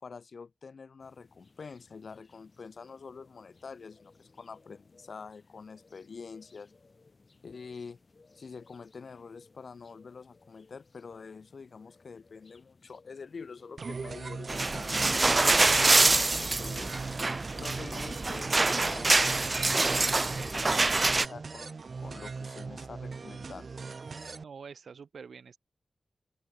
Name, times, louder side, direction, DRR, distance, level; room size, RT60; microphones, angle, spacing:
voice 1, 0.0-6.7 7.4-8.0 8.4-17.0 17.6-23.7 24.2-24.3, left 5 dB, 60° left, 2.1 m, -46 dB
sound 1, 1.0-19.7, left 3 dB, 40° left, 6.3 m, -62 dB
sound 2, 13.8-24.4, right 4 dB, 55° right, 1.2 m, -41 dB
sound 3, 14.5-21.3, right 3 dB, 30° right, 0.5 m, -25 dB
voice 2, 24.4-25.6, right 6 dB, 75° right, 2.0 m, -46 dB
wide cardioid pair, 95°, 0 cm